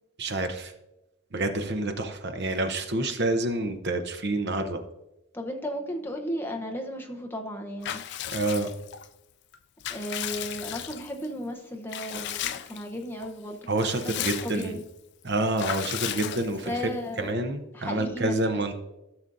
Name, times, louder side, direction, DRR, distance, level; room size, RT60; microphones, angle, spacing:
voice 1, 0.2-0.7 1.3-4.8 8.3-8.7 13.7-14.8 15.2-16.9 17.2-18.7, right 2 dB, 50° right, 7 dB, 0.8 m, -28 dB
voice 2, 5.3-8.0 9.9-14.8 16.6-17.4 17.7-18.7, equal, 10° left, 2 dB, 0.8 m, -35 dB
Water / Bathtub (filling or washing) / Liquid, 7.8-9.1 9.5-11.3 11.9-12.9 13.2-13.3 13.6-14.8 15.6-16.8, left 11 dB, 55° left, 0.4 m, -35 dB
14.5 x 6.2 x 2.6 m, 0.92 s
head